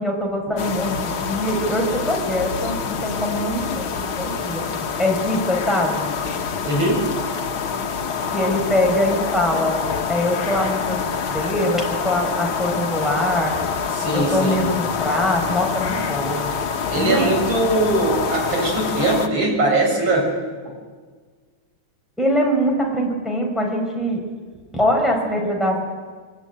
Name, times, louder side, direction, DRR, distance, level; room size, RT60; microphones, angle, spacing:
voice 1, 0.0-3.9 4.2-4.6 5.0-6.1 8.3-11.0 11.3-13.6 14.1-16.5 16.9-17.3 22.2-24.2 24.7-25.8, left 1 dB, ahead, -1 dB, 5.1 m, -23 dB
sound 1, 0.6-19.3, left 6 dB, 75° left, 2.2 m, -26 dB
voice 2, 6.7-7.0 13.9-14.6 16.9-20.3, right 2 dB, 70° right, 0 dB, 7.3 m, -20 dB
24.0 x 22.0 x 9.4 m, 1.5 s
omnidirectional pair, 2.2 m